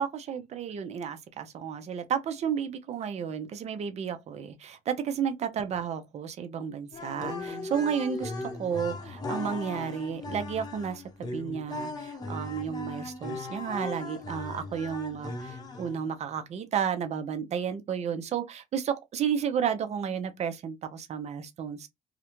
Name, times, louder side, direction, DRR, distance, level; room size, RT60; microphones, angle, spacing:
voice 1, 0.0-21.9, right 7 dB, 40° right, 0.5 m, -32 dB
sound 1, 6.9-16.2, left 2 dB, 25° left, 0.8 m, -38 dB
2.4 x 2.1 x 2.9 m
cardioid pair, 110°, 17 cm